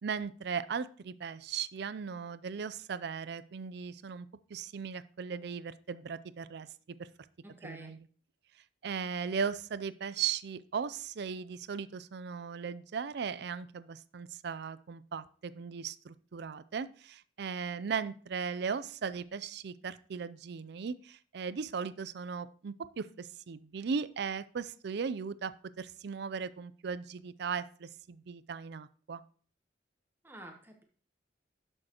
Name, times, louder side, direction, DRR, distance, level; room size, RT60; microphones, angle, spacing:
voice 1, 0.0-6.7 7.0-7.1 7.6-8.0 8.8-29.2, right 6 dB, 60° right, 15 dB, 0.4 m, -37 dB
voice 2, 7.4-7.9 30.2-30.8, right 1 dB, 10° right, 4 dB, 1.0 m, -49 dB
11.0 x 6.4 x 2.9 m, 0.43 s
head